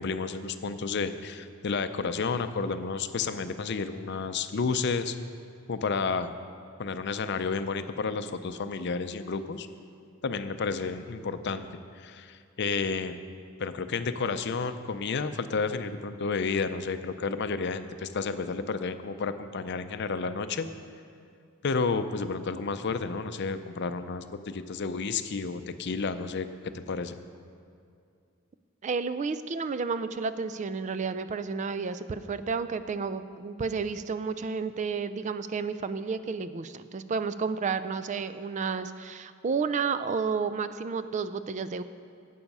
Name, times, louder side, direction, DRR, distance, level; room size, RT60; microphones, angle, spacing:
voice 1, 0.0-5.2 5.7-6.3 6.8-9.7 10.2-11.7 12.0-13.2 13.6-20.7 21.6-26.5 26.9-27.1, left 4 dB, 55° left, 10 dB, 0.5 m, -31 dB
voice 2, 28.8-41.8, right 5 dB, 35° right, 12 dB, 0.4 m, -31 dB
11.5 x 8.5 x 5.4 m, 2.4 s
head